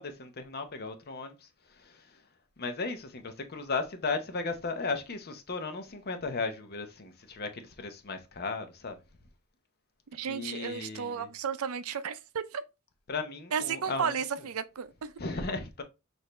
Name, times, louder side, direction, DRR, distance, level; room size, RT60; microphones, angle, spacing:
voice 1, 0.0-2.2 2.6-9.0 10.2-11.3 13.1-14.2 15.2-15.8, left 3 dB, 45° left, 0.8 m, -36 dB
voice 2, 10.1-12.6 13.5-15.1, right 7 dB, 70° right, 0.5 m, -33 dB
6.3 x 2.6 x 3.1 m
head